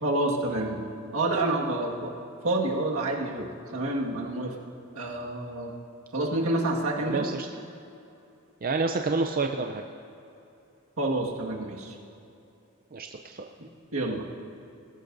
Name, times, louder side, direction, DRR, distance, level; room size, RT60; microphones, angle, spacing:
voice 1, 0.0-0.8 1.1-2.1 2.4-4.5 4.9-5.7 6.1-7.3 11.0-12.0 13.9-14.3, right 2 dB, 75° right, -1 dB, 1.8 m, -28 dB
voice 2, 7.1-7.5 8.6-9.8 12.9-13.5, right 3 dB, 40° right, 4 dB, 0.5 m, -28 dB
21.0 x 15.5 x 2.6 m, 2.8 s
head